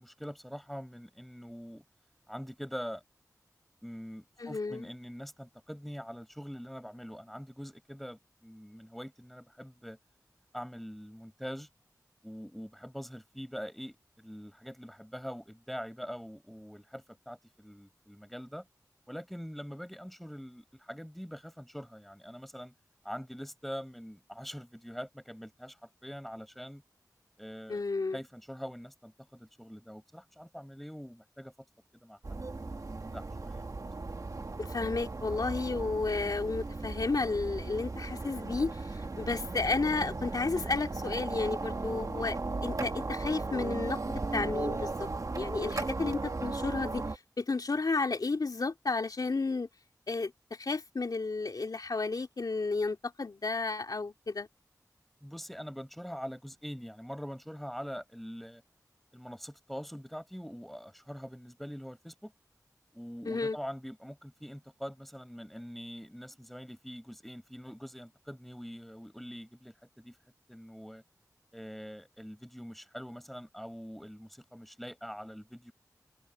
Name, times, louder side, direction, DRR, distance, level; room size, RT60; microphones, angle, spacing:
voice 1, 0.0-1.8 2.3-3.0 3.8-10.0 10.5-11.7 12.2-18.7 19.1-22.7 23.0-25.8 26.0-26.8 27.4-27.8 28.1-31.5 32.0-32.8 33.1-33.6 55.2-58.6 59.1-62.3 62.9-70.1 70.5-71.0 71.5-75.7, equal, ahead, 7.6 m, -44 dB
voice 2, 4.4-4.9 27.7-28.2 34.6-42.4 42.6-45.1 45.3-47.0 47.4-49.7 50.1-50.3 50.6-54.5 63.2-63.6, left 3 dB, 70° left, 2.9 m, -32 dB
sound 1, 32.2-47.2, right 3 dB, 55° right, 1.5 m, -36 dB
wide cardioid pair, 65°, 7 cm